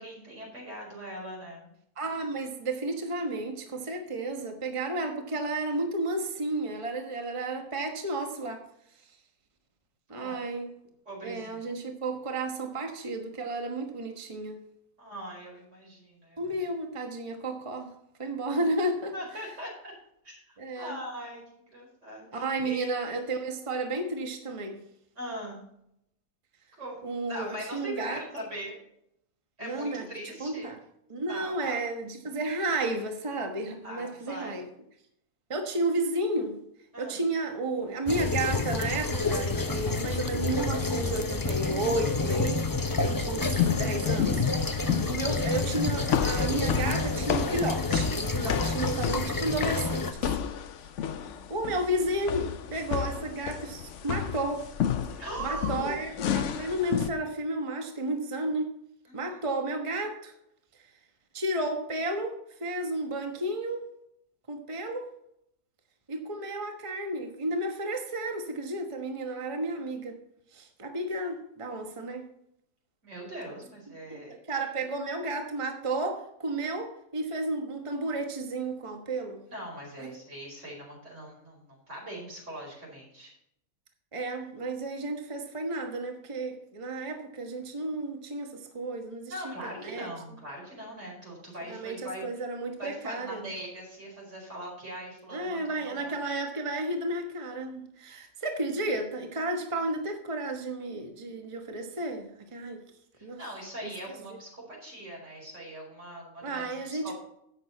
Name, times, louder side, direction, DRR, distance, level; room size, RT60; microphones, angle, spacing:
voice 1, 0.0-1.7 10.1-10.4 11.0-11.7 15.0-16.6 18.5-18.6 19.1-19.9 20.2-22.9 25.1-25.6 26.8-28.8 29.6-30.7 31.3-31.8 33.8-34.5 36.9-37.2 51.0-51.5 55.2-56.0 59.1-59.4 73.0-74.4 79.4-83.3 89.3-92.3 92.8-96.1 103.1-107.1, right 1 dB, 55° right, -2 dB, 5.1 m, -41 dB
voice 2, 2.0-8.6 10.1-10.7 11.2-14.6 16.4-17.9 18.2-19.1 20.6-21.0 22.3-24.8 27.0-28.2 29.6-30.0 30.4-30.8 31.1-34.7 35.5-36.6 37.0-42.6 43.1-50.3 51.5-54.7 55.4-58.7 59.1-60.3 61.3-63.8 64.5-65.1 66.1-70.2 70.5-72.3 74.1-74.2 74.5-79.4 84.1-90.1 91.7-93.5 95.3-102.8 103.2-103.4 106.4-107.1, right 2 dB, 25° right, 4 dB, 1.2 m, -32 dB
sound 1, 38.1-50.1, left 3 dB, 35° left, 0.3 m, -29 dB
sound 2, 43.6-57.1, left 9 dB, 65° left, 0.9 m, -32 dB
11.5 x 8.1 x 4.2 m, 0.75 s
omnidirectional pair, 1.5 m